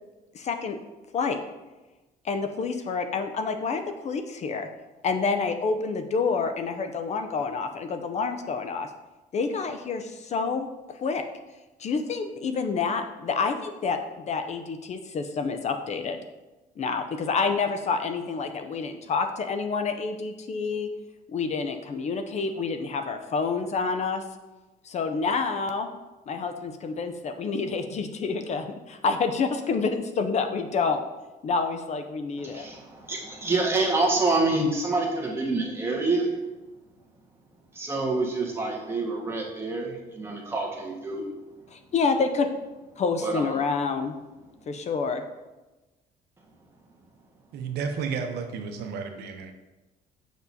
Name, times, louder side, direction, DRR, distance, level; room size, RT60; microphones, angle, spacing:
voice 1, 0.3-0.8 1.1-1.4 2.2-4.7 5.0-8.9 9.3-11.2 11.8-16.2 16.8-20.9 21.3-24.2 24.8-25.9 26.3-31.0 31.4-32.7 41.7-42.5 43.0-44.2 44.7-45.2, left 4 dB, 40° left, 7 dB, 0.5 m, -28 dB
voice 2, 32.4-36.4 37.7-41.3 43.2-43.5, right 2 dB, 15° right, -3 dB, 1.5 m, -27 dB
voice 3, 47.5-49.5, right 5 dB, 75° right, 5 dB, 0.8 m, -32 dB
6.8 x 6.0 x 2.7 m, 1.1 s
cardioid pair, 110°, 17 cm